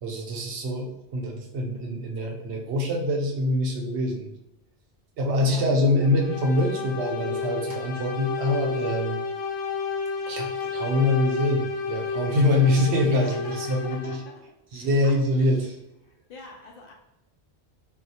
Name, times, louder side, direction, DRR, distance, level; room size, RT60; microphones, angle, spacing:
voice 1, 0.0-4.3 5.2-9.2 10.3-14.2 14.7-15.7, left 1 dB, 75° right, 1 dB, 0.9 m, -24 dB
voice 2, 5.4-5.8 13.0-14.4 14.7-15.1 15.4-15.5 16.0-16.9, left 3 dB, 60° left, 1 dB, 0.7 m, -44 dB
sound 1, 6.0-14.4, left 5 dB, 80° left, 1.0 m, -31 dB
4.1 x 2.2 x 2.7 m, 0.85 s
omnidirectional pair, 1.2 m